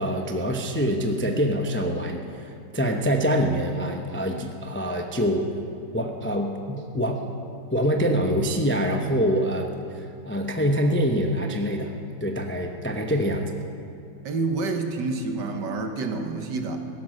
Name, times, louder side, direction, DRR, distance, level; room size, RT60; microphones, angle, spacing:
voice 1, 0.0-5.5 5.9-7.2 7.7-11.9 12.2-13.6, equal, 15° left, 3 dB, 0.3 m, -25 dB
voice 2, 14.3-16.8, right 3 dB, 80° right, 5 dB, 1.8 m, -28 dB
16.0 x 10.5 x 6.4 m, 2.5 s
omnidirectional pair, 1.9 m